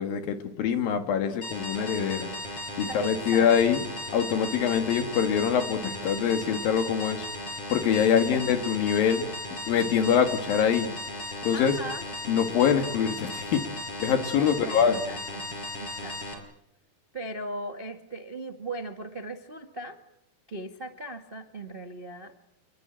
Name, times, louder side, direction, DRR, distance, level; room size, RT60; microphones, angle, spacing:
voice 1, 0.0-2.3 2.8-3.9 4.1-7.3 7.7-9.3 9.7-10.9 11.4-11.7 12.3-13.6 14.0-15.1, left 7 dB, 70° left, 7 dB, 3.5 m, -24 dB
sound 1, 1.4-16.3, left 1 dB, 40° left, 6.3 m, -36 dB
voice 2, 2.8-3.5 8.1-8.4 9.2-9.3 11.5-12.1 14.3-16.5 17.1-20.0 20.5-22.3, right 2 dB, 55° right, 5 dB, 0.6 m, -38 dB
28.0 x 21.0 x 9.0 m, 0.83 s
omnidirectional pair, 4.3 m